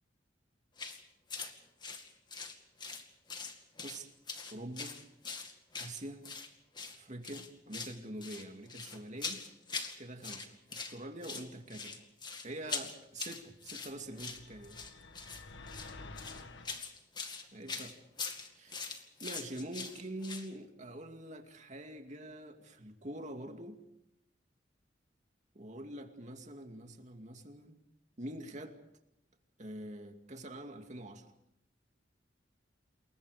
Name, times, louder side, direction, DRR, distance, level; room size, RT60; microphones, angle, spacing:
sound 1, 0.8-1.0 1.3-1.5 1.8-3.0 3.3-4.0 4.3-6.5 6.7-7.0 7.2-10.0 10.2-10.9 11.2-20.5, left 5 dB, 25° left, 2.2 m, -42 dB
voice 1, 4.5-5.0 5.8-6.2 6.9-9.5 10.0-12.0 12.4-14.8 17.5-18.0 18.5-23.8 25.5-27.8 28.2-28.8 29.6-31.3, right 1 dB, 40° right, 5 dB, 2.5 m, -45 dB
sound 2, 13.9-16.8, left 3 dB, 75° left, 1.9 m, -50 dB
28.5 x 22.5 x 5.1 m, 0.82 s
head